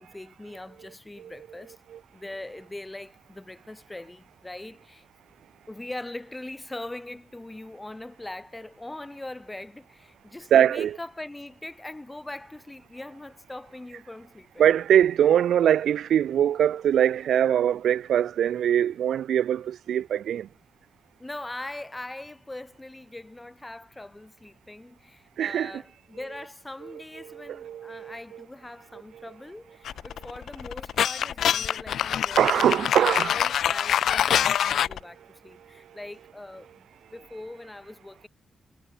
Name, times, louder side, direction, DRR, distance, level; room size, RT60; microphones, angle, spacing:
voice 1, 0.0-1.8 2.1-5.1 5.7-14.6 21.2-38.3, left 2 dB, 15° left, 1.2 m, -41 dB
voice 2, 10.5-11.0 14.6-20.5 25.4-25.8 26.8-26.9 27.2-28.4 29.1-29.3 32.4-33.3 34.6-34.7, right 10 dB, 85° right, 0.4 m, -23 dB
sound 1, 29.9-35.0, left 9 dB, 80° left, 0.3 m, -25 dB
cardioid pair, 120°, 0 cm